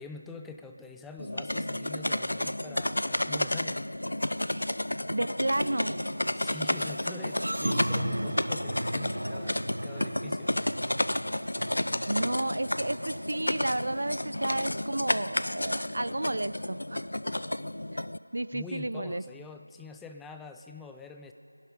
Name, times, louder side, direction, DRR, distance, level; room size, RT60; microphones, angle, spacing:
voice 1, 0.0-3.9 6.3-10.5 18.5-21.3, left 4 dB, 5° left, 5 dB, 0.3 m, -45 dB
sound 1, 1.2-18.2, left 1 dB, 70° left, 0.4 m, -31 dB
voice 2, 5.1-6.0 12.1-17.1 17.9-18.0 18.3-19.2, right 1 dB, 60° right, 16 dB, 0.5 m, -32 dB
sound 2, 5.5-14.9, right 1 dB, 85° right, 1.0 m, -37 dB
22.5 x 11.0 x 5.0 m, 2.6 s
figure-of-eight pair, 170°, 0 cm